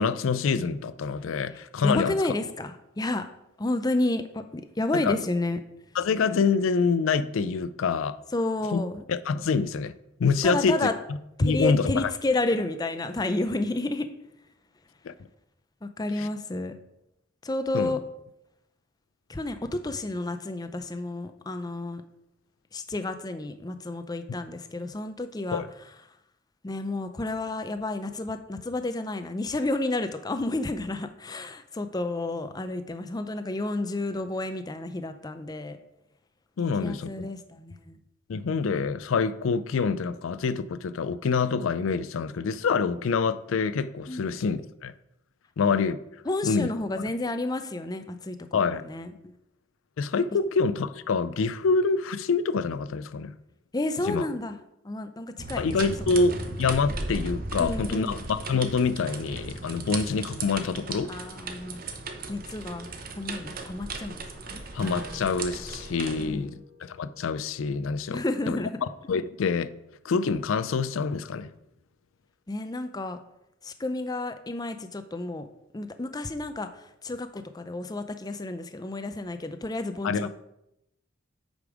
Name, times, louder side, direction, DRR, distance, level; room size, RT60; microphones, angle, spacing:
voice 1, 0.0-2.1 4.9-5.2 6.0-8.2 8.7-8.8 9.1-9.9 10.2-10.9 11.4-12.1 15.0-15.1 16.2-16.3 17.7-18.0 25.5-25.7 36.6-37.3 38.3-44.9 45.6-46.0 46.4-46.7 48.5-48.8 50.0-53.3 54.1-54.3 55.6-61.1 64.7-68.6 69.1-69.7 70.0-71.5 80.0-80.3, left 5 dB, 75° left, 0.4 m, -26 dB
voice 2, 1.8-3.3 3.6-5.6 8.3-9.0 10.4-10.9 11.4-14.1 15.8-16.7 17.4-18.0 19.3-22.0 22.7-25.6 26.6-35.8 36.8-38.0 44.1-44.3 46.3-49.3 53.7-54.6 54.8-55.8 57.6-58.3 61.0-61.8 62.3-62.9 63.2-64.2 64.5-64.6 66.2-66.6 68.1-68.8 72.5-73.2 73.6-75.5 75.7-80.3, left 2 dB, 20° left, 0.5 m, -31 dB
sound 1, 55.4-66.3, right 3 dB, 45° right, 1.0 m, -36 dB
Strum, 64.8-69.7, equal, 15° right, 1.9 m, -47 dB
8.3 x 5.3 x 4.8 m
head